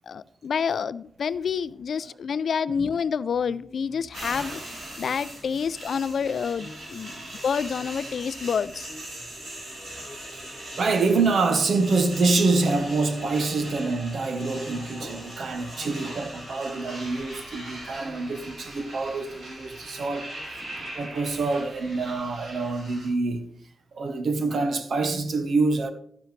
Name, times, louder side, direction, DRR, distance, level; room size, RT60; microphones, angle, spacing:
voice 1, 0.1-4.6 5.0-7.1 7.4-8.9, left 6 dB, 65° left, 0.3 m, -28 dB
sound 1, 3.3-21.6, left 1 dB, 10° left, 1.9 m, -49 dB
sound 2, 4.1-23.1, right 1 dB, 90° right, 5.3 m, -41 dB
voice 2, 10.3-23.4 23.9-25.9, right 3 dB, 60° right, 1.0 m, -26 dB
12.5 x 9.9 x 3.2 m
wide cardioid pair, 160°, 0 cm